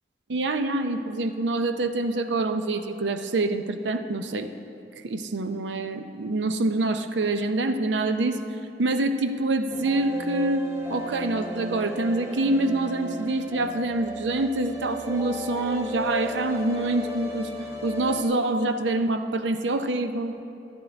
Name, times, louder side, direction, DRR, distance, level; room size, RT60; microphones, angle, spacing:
voice 1, 0.3-4.5 5.0-8.4 8.8-17.5 17.8-20.3, right 2 dB, 90° right, 8 dB, 0.6 m, -26 dB
sound 1, 9.7-18.2, equal, 15° right, 0.9 m, -35 dB
12.5 x 12.0 x 3.4 m, 2.8 s
head